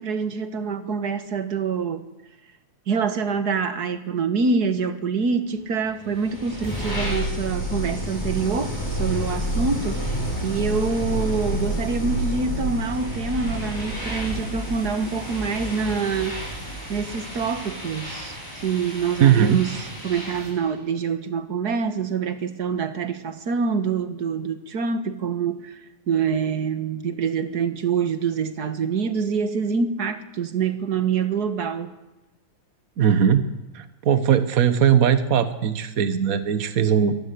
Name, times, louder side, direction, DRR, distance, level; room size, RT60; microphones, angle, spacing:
voice 1, 0.0-2.0 2.9-8.7 9.0-16.4 16.9-19.7 20.0-25.8 26.1-31.9, right 5 dB, 45° right, 11 dB, 1.5 m, -26 dB
sound 1, 6.0-20.6, equal, 5° left, 7.8 m, -30 dB
voice 2, 19.2-19.6 33.0-33.4 33.7-37.2, right 8 dB, 70° right, 12 dB, 0.8 m, -19 dB
23.5 x 19.0 x 8.5 m, 0.97 s
omnidirectional pair, 3.3 m